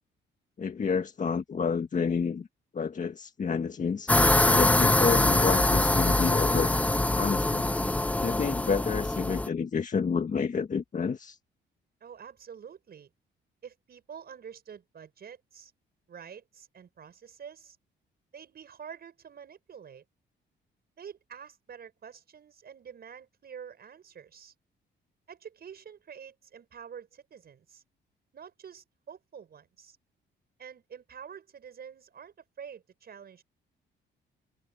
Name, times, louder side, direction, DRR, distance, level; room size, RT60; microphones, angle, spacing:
voice 1, 0.6-2.5 2.7-4.1 4.4-6.7 7.1-7.7 8.2-11.4, left 5 dB, 40° left, 1.7 m, -29 dB
sound 1, 4.1-9.5, left 1 dB, 5° left, 0.5 m, -24 dB
voice 2, 12.0-13.1 13.6-15.7 16.1-17.8 18.3-20.0 21.0-24.5 25.3-27.8 28.3-30.0 30.6-33.4, right 7 dB, 50° right, 6.2 m, -47 dB
open air
cardioid pair, 90°, 20 cm